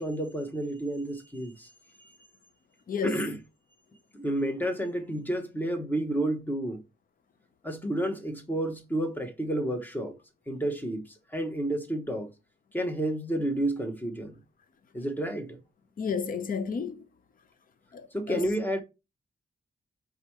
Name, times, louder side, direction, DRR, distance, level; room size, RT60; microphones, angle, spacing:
voice 1, 0.0-1.7 3.0-3.4 4.1-6.8 7.6-10.1 10.5-11.0 11.3-12.3 12.7-14.3 14.9-15.6 18.1-18.8, right 1 dB, 10° left, 0.9 m, -30 dB
voice 2, 2.9-3.2 16.0-17.0 17.9-18.5, left 6 dB, 50° left, 0.6 m, -32 dB
5.0 x 3.5 x 3.0 m
wide cardioid pair, 130°, 18 cm